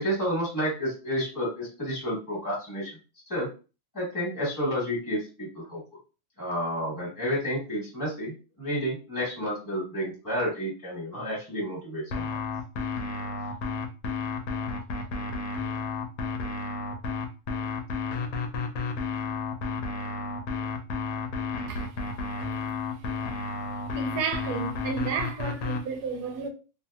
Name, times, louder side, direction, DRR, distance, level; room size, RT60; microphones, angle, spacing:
voice 1, 0.0-3.0 3.3-3.5 3.9-5.8 6.4-12.4, equal, 15° left, 1.3 m, -30 dB
sound 1, 12.1-25.8, left 4 dB, 70° left, 1.0 m, -32 dB
voice 2, 23.9-26.5, right 5 dB, 85° right, 1.1 m, -31 dB
2.7 x 2.7 x 2.3 m
omnidirectional pair, 1.7 m